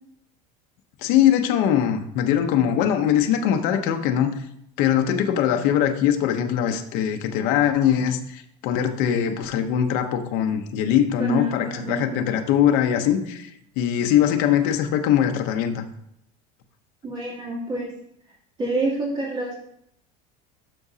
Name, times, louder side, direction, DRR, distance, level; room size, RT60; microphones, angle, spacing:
voice 1, 1.0-4.3 4.8-13.5 13.8-15.8, left 10 dB, 55° left, 6 dB, 0.8 m, -21 dB
voice 2, 11.2-12.2 17.0-17.9 18.6-19.6, right 1 dB, 25° right, -5 dB, 2.8 m, -27 dB
12.0 x 4.9 x 2.8 m, 0.75 s
cardioid pair, 160°, 18 cm